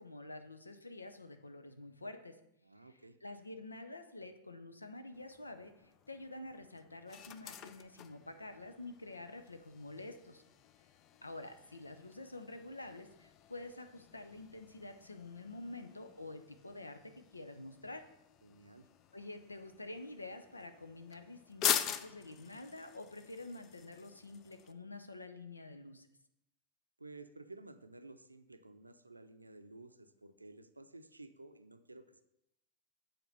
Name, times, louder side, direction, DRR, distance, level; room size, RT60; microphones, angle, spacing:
voice 1, 0.0-2.4 2.8-2.9 3.2-10.4 11.2-18.1 19.1-26.1, left 2 dB, 80° left, 8 dB, 0.7 m, -48 dB
voice 2, 2.6-3.2 18.4-18.9 27.0-32.2, right 2 dB, 85° right, 9 dB, 0.6 m, -54 dB
sound 1, 5.1-24.7, left 9 dB, 35° left, 0.5 m, -44 dB
7.8 x 4.5 x 6.7 m, 0.83 s
figure-of-eight pair, 90°, 0 cm